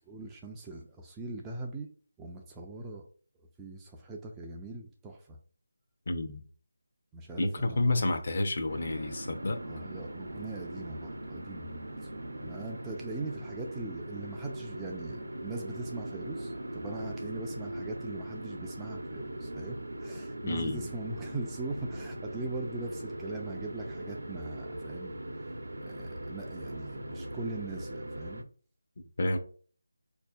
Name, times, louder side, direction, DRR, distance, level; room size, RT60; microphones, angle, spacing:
voice 1, 0.1-1.9 2.2-3.1 3.6-5.4 7.1-8.2 9.6-12.1 12.4-25.2 25.8-28.4, right 3 dB, 10° right, 0.3 m, -41 dB
voice 2, 6.1-6.4 7.4-9.6 20.5-20.9 29.2-29.4, left 2 dB, 50° left, 0.6 m, -29 dB
sound 1, 8.7-28.4, right 1 dB, 90° right, 0.6 m, -40 dB
4.0 x 2.6 x 2.3 m
figure-of-eight pair, 165°, 0 cm